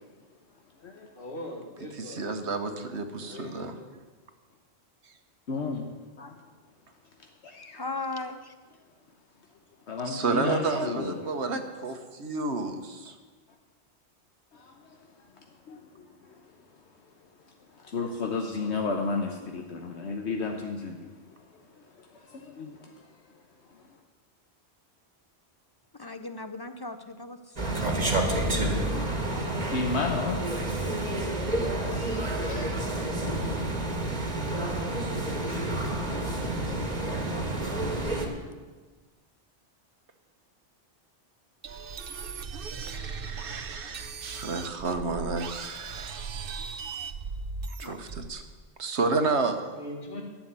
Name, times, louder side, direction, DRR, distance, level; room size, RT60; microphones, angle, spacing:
voice 1, 1.1-2.3 3.2-3.9 49.7-50.2, left 1 dB, 55° left, 1 dB, 2.2 m, -41 dB
voice 2, 2.0-3.7 10.0-13.2 42.9-47.0 47.8-48.4 48.8-49.6, right 3 dB, 75° right, 7 dB, 1.4 m, -31 dB
voice 3, 5.5-5.9 6.2-6.3 7.4-7.8 9.9-11.2 14.5-14.7 15.7-16.1 17.8-21.1 22.0-22.9 29.6-30.4 31.9-32.7, left 4 dB, 75° left, 3 dB, 1.3 m, -33 dB
voice 4, 7.7-8.5 25.9-29.1 37.0-38.5 47.8-48.0, left 3 dB, 25° left, 9 dB, 0.5 m, -39 dB
sound 1, 27.6-38.3, right 1 dB, 40° right, 1.7 m, -29 dB
sound 2, 41.6-48.4, right 5 dB, 60° right, 0.9 m, -38 dB
12.0 x 7.2 x 9.5 m, 1.3 s
omnidirectional pair, 1.1 m